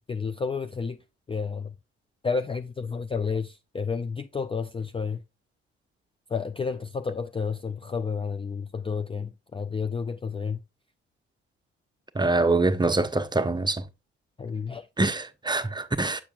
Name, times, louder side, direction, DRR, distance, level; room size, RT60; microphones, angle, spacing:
voice 1, 0.1-1.0 1.3-1.7 2.2-5.2 6.3-10.6 14.4-14.9, left 5 dB, 20° left, 0.4 m, -31 dB
voice 2, 12.1-13.9 15.0-16.2, right 2 dB, 15° right, 0.8 m, -24 dB
6.8 x 6.3 x 2.4 m
hypercardioid pair, 45°, 31 cm